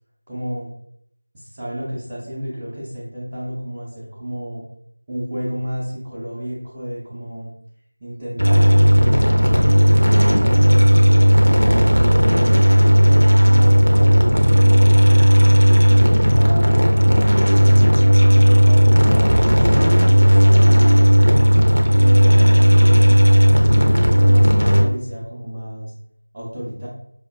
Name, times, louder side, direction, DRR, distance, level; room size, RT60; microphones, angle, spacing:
voice 1, 0.3-0.7 1.3-4.6 5.1-7.5 8.0-15.2 15.7-16.7 17.0-17.2 17.5-20.9 21.3-25.9 26.3-26.9, equal, 10° right, -8 dB, 0.5 m, -31 dB
sound 1, 8.4-24.8, equal, 85° right, 0.7 m, -13 dB
4.9 x 2.3 x 2.3 m, 0.74 s
figure-of-eight pair, 170°, 0 cm